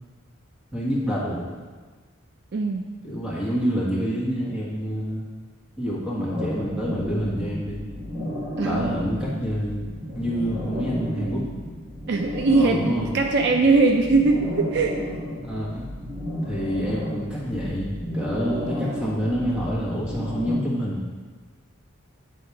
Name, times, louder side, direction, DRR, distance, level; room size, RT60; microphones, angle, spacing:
voice 1, 0.7-1.5 3.0-5.2 5.8-7.8 8.6-11.4 12.5-13.1 15.4-15.9 16.4-21.0, equal, 5° right, -6 dB, 1.5 m, -27 dB
voice 2, 2.5-2.8 8.6-8.9 11.1-11.3 12.1-14.9, right 3 dB, 55° right, 3 dB, 0.4 m, -21 dB
sound 1, 6.3-20.5, left 1 dB, 25° right, 1.6 m, -33 dB
8.3 x 4.2 x 4.7 m, 1.4 s
head